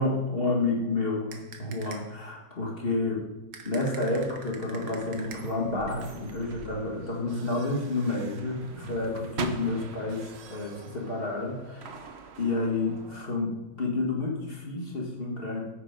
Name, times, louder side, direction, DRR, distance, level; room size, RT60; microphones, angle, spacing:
voice 1, 0.0-3.2 3.6-12.0 12.4-15.6, left 2 dB, 35° left, -1 dB, 1.6 m, -30 dB
sound 1, 1.3-2.2 3.5-5.7, right 6 dB, 90° right, 1.6 m, -46 dB
sound 2, 4.1-13.3, right 4 dB, 55° right, 0.8 m, -43 dB
9.6 x 4.7 x 5.1 m, 1.1 s
omnidirectional pair, 1.8 m